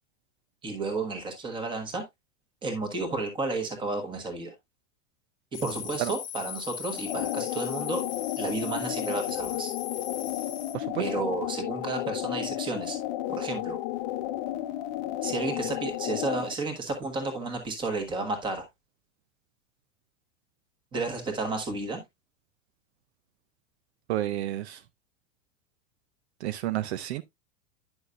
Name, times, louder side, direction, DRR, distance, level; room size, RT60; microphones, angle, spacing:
voice 1, 0.6-2.0 2.6-4.5 5.6-8.0 8.4-9.7 11.0-13.0 13.4-13.8 15.2-18.7 20.9-22.0, right 3 dB, 15° right, 1.4 m, -32 dB
sound 1, 5.5-10.8, left 10 dB, 20° left, 1.1 m, -39 dB
sound 2, 6.9-16.5, left 14 dB, 35° left, 0.8 m, -33 dB
voice 2, 10.7-11.1 24.1-24.8 26.4-27.2, right 13 dB, 60° right, 0.6 m, -30 dB
9.7 x 6.2 x 2.4 m
supercardioid pair, 170°, 36 cm